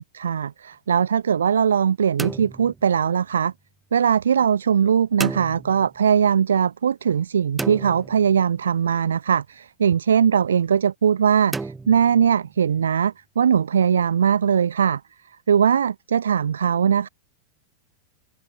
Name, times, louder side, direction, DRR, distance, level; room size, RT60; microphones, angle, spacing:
voice 1, 0.0-3.5 3.9-15.0 15.5-17.1, right 7 dB, 70° right, 0.6 m, -20 dB
sound 1, 2.2-3.5 5.2-6.2 7.6-8.8 11.5-12.7, right 3 dB, 10° right, 1.7 m, -34 dB
open air
figure-of-eight pair, 90°, 0 cm